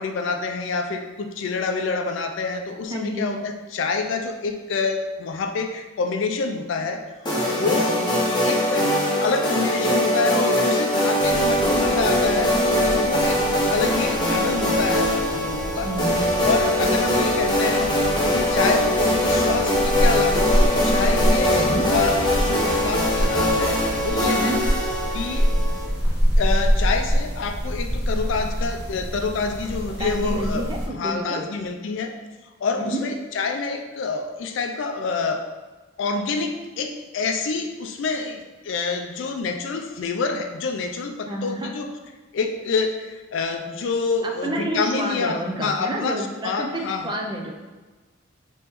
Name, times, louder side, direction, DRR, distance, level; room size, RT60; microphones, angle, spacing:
voice 1, 0.0-7.0 7.5-8.0 8.4-8.9 9.2-12.6 12.9-15.9 16.4-18.0 18.3-24.6 25.1-25.5 26.4-30.6 30.9-32.2 32.6-35.5 36.0-42.0 42.3-47.2, left 4 dB, 65° left, 5 dB, 0.3 m, -27 dB
voice 2, 2.9-3.3 7.6-8.1 15.8-16.3 21.5-21.9 24.3-24.6 30.0-31.4 32.8-33.0 41.3-41.7 44.2-47.5, right 1 dB, 20° right, 1 dB, 0.4 m, -29 dB
sound 1, 7.2-25.8, left 1 dB, 20° left, 0.6 m, -22 dB
Quiet Ambience (near forest area), 11.2-30.9, equal, 5° right, 0.8 m, -26 dB
3.0 x 3.0 x 3.3 m, 1.3 s
head